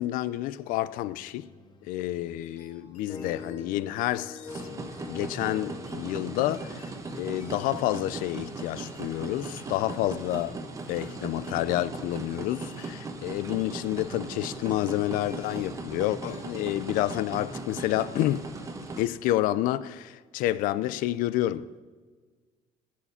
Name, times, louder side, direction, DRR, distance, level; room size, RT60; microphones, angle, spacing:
voice 1, 0.0-1.5 1.8-10.6 10.9-18.5 19.0-21.8, left 14 dB, 80° left, 0.5 m, -29 dB
sound 1, 0.8-7.3, left 4 dB, 30° left, 1.0 m, -46 dB
sound 2, 2.4-3.7 4.2-6.1 6.5-7.9 8.8-9.8 10.3-12.4 12.7-13.0 13.6-14.2 14.6-15.9 16.2-16.6 16.9-17.3, left 5 dB, 60° left, 2.5 m, -58 dB
sound 3, 4.5-19.1, right 3 dB, 25° right, 1.1 m, -38 dB
15.5 x 7.3 x 5.7 m
cardioid pair, 140°, 14 cm